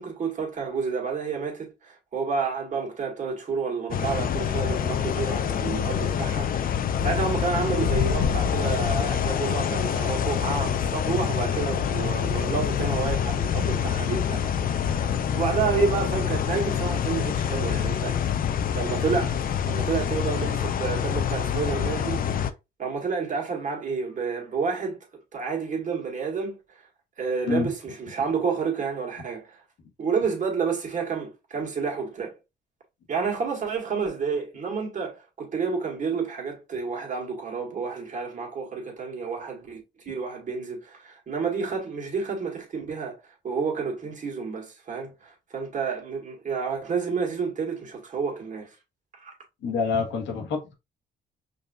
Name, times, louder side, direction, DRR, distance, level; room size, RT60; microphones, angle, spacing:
voice 1, 0.0-6.5 6.8-18.3 18.7-19.4 19.7-22.5 22.8-25.0 25.3-26.6 27.2-29.6 30.0-32.4 33.1-43.2 43.4-48.7 49.1-49.3, right 5 dB, 45° right, 1.7 m, -30 dB
sound 1, 3.9-22.5, left 8 dB, 50° left, 0.5 m, -26 dB
voice 2, 49.6-50.7, left 5 dB, 85° left, 1.2 m, -27 dB
5.3 x 2.7 x 2.3 m
cardioid pair, 85°, 18 cm